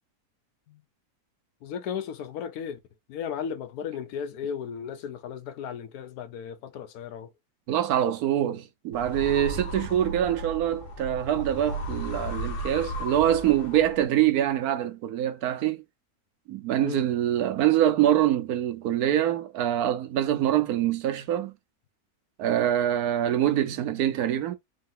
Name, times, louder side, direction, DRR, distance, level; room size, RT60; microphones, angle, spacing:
voice 1, 1.6-2.8 3.1-7.3 16.8-17.1, left 7 dB, 85° left, 1.2 m, -35 dB
voice 2, 7.7-15.8 16.5-21.5 22.4-24.6, right 11 dB, 90° right, 1.2 m, -25 dB
sound 1, 8.9-14.2, equal, 55° left, 0.7 m, -35 dB
3.8 x 2.6 x 3.6 m
omnidirectional pair, 1.6 m